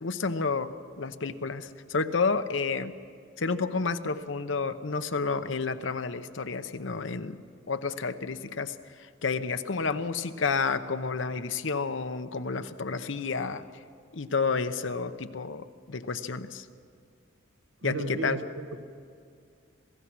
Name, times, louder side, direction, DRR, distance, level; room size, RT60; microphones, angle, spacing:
voice 1, 0.0-2.9 3.4-7.4 7.7-8.7 9.2-13.6 14.1-16.6 17.8-18.4, left 4 dB, 80° left, 10 dB, 0.9 m, -30 dB
voice 2, 17.8-18.9, right 2 dB, 70° right, 8 dB, 1.3 m, -34 dB
26.5 x 18.0 x 6.1 m, 2.3 s
head